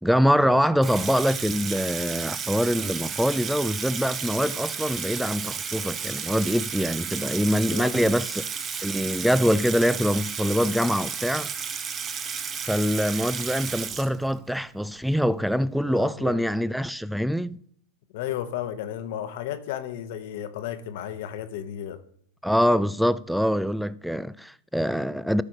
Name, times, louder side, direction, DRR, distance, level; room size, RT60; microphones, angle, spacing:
voice 1, 0.0-8.4 8.8-11.5 12.6-17.6 22.4-25.4, equal, ahead, 0.4 m, -24 dB
Water tap faucet / Sink (filling or washing), 0.8-14.6, right 6 dB, 30° right, 0.9 m, -33 dB
voice 2, 7.7-8.1 15.9-16.4 18.1-22.0, left 11 dB, 65° left, 1.0 m, -33 dB
13.0 x 4.9 x 4.9 m
hypercardioid pair, 105°, 0 cm